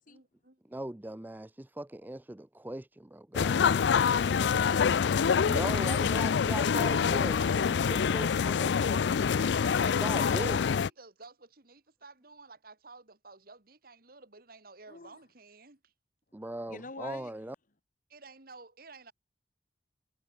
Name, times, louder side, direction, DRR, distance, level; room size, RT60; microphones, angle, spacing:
voice 1, 0.0-0.9 9.3-15.9 18.1-19.1, right 3 dB, 55° right, 2.9 m, -52 dB
voice 2, 0.7-3.9 5.4-9.1 10.0-10.6 16.3-17.6, right 1 dB, 10° right, 0.5 m, -39 dB
sound 1, 3.3-10.9, left 6 dB, 80° left, 0.4 m, -26 dB
voice 3, 4.0-5.5 14.9-15.2 16.7-17.3, left 3 dB, 50° left, 1.5 m, -45 dB
head